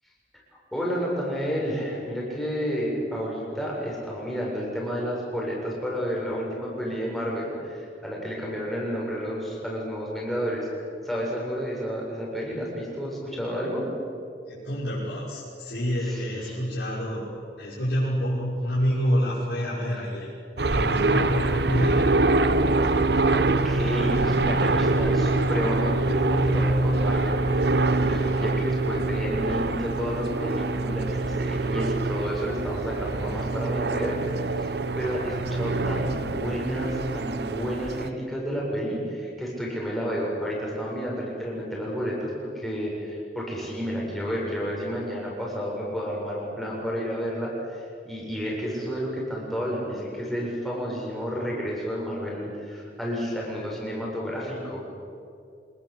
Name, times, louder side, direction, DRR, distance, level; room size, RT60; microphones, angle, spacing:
voice 1, 0.3-10.7 11.0-13.9 16.1-16.6 23.3-34.7 35.0-54.8, equal, ahead, -4 dB, 7.3 m, -31 dB
voice 2, 14.5-17.3 17.6-20.3 20.6-22.1, equal, 75° left, -8 dB, 6.3 m, -27 dB
sound 1, 20.6-38.1, right 2 dB, 65° right, 1.0 m, -25 dB
27.0 x 21.0 x 8.1 m, 2.4 s
head